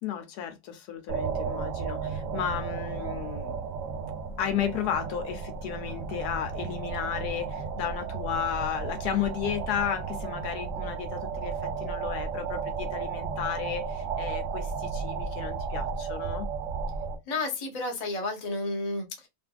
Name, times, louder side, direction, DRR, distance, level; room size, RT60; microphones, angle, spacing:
voice 1, 0.0-3.6 4.4-16.5, left 9 dB, 80° left, 1.2 m, -33 dB
sound 1, 1.1-17.2, right 5 dB, 65° right, 0.8 m, -34 dB
voice 2, 17.3-19.3, left 2 dB, 35° left, 0.6 m, -31 dB
2.8 x 2.5 x 2.3 m
omnidirectional pair, 1.7 m